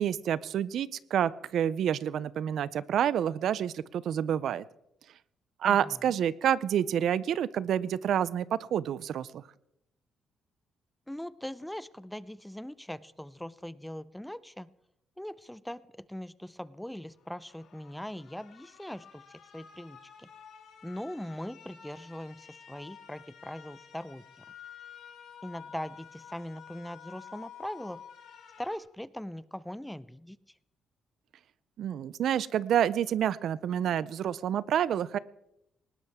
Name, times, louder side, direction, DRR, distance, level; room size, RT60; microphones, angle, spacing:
voice 1, 0.0-4.6 5.6-9.4 31.8-35.2, right 9 dB, 70° right, 19 dB, 0.5 m, -28 dB
voice 2, 5.6-6.2 11.1-14.7 15.2-19.2 19.5-20.3 20.8-24.4 25.4-28.0 28.6-30.4, left 1 dB, 5° left, 17 dB, 0.6 m, -41 dB
sound 1, 17.2-28.8, left 8 dB, 75° left, 3.5 m, -51 dB
19.5 x 17.5 x 3.6 m, 0.82 s
cardioid pair, 90°, 0 cm